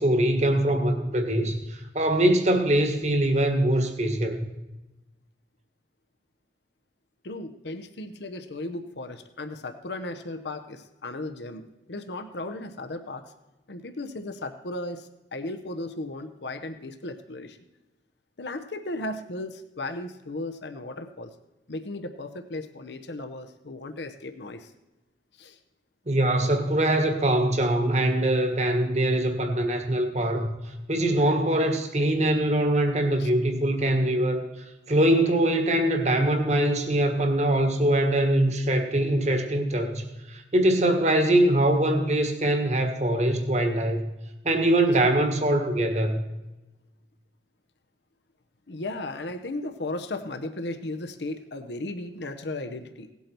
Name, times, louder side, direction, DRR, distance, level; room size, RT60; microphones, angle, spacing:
voice 1, 0.0-4.4 26.1-30.5 30.9-34.4 34.9-44.1 44.4-46.2, right 1 dB, 40° right, 5 dB, 1.5 m, -23 dB
voice 2, 7.2-11.6 11.9-13.3 13.7-17.6 18.4-21.3 21.7-24.7 25.4-25.6 33.2-33.3 48.7-53.1, left 2 dB, 75° left, 8 dB, 0.9 m, -35 dB
17.5 x 8.4 x 4.5 m, 1.0 s
head